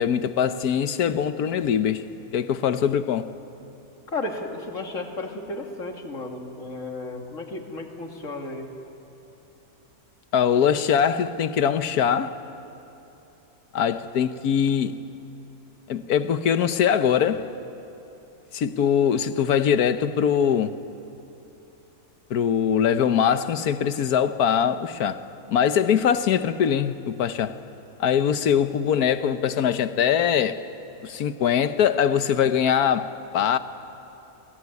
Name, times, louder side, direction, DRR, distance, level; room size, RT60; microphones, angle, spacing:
voice 1, 0.0-2.0 2.3-3.3 10.3-12.4 13.7-15.0 15.9-17.5 18.5-20.8 22.3-25.2 25.5-27.6 28.0-30.6 31.0-33.6, left 8 dB, 80° left, 1.4 m, -22 dB
voice 2, 4.1-8.7, left 2 dB, 55° left, 2.7 m, -33 dB
28.0 x 21.0 x 9.6 m
omnidirectional pair, 1.6 m